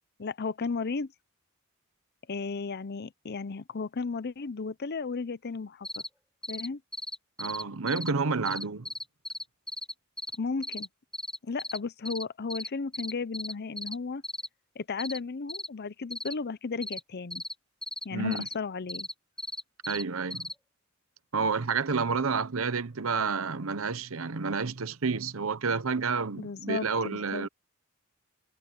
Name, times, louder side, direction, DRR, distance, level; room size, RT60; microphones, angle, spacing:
voice 1, 0.2-1.1 2.3-6.0 6.5-6.8 10.4-10.9 11.4-14.2 14.8-17.4 18.0-19.1 26.4-27.5, left 4 dB, 50° left, 0.6 m, -34 dB
sound 1, 5.8-6.1 6.4-6.7 6.9-8.1 8.5-10.4 10.6-10.9 11.1-11.8 12.1-12.2 12.5-12.7 12.9-14.0 14.2-14.5 15.0-15.2 15.5-15.7 16.1-16.3 16.8-17.0 17.3-17.5 17.8-18.0 18.3-18.5 18.9-20.0 20.3-20.5, left 1 dB, 5° left, 0.7 m, -36 dB
voice 2, 7.4-8.9 18.1-18.5 19.9-20.5 21.3-27.5, right 4 dB, 70° right, 0.9 m, -30 dB
head